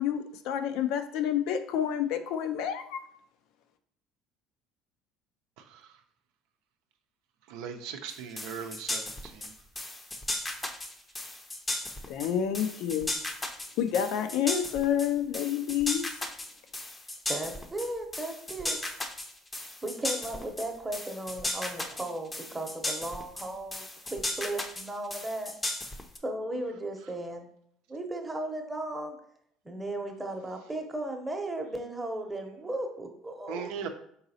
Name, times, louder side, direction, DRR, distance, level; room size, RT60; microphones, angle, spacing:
voice 1, 0.0-3.0 12.1-13.1 13.8-16.1, left 9 dB, 75° left, 9 dB, 0.4 m, -29 dB
voice 2, 5.6-5.9 7.5-9.5 33.5-33.9, right 7 dB, 80° right, 6 dB, 0.5 m, -39 dB
sound 1, 8.1-26.2, left 1 dB, 20° left, 0.6 m, -36 dB
voice 3, 17.3-18.8 19.8-23.8 24.1-25.5 26.2-27.5 27.9-29.2 29.6-33.8, right 1 dB, 15° right, 4 dB, 0.8 m, -36 dB
4.0 x 3.9 x 2.7 m, 0.68 s
supercardioid pair, 90°, 0 cm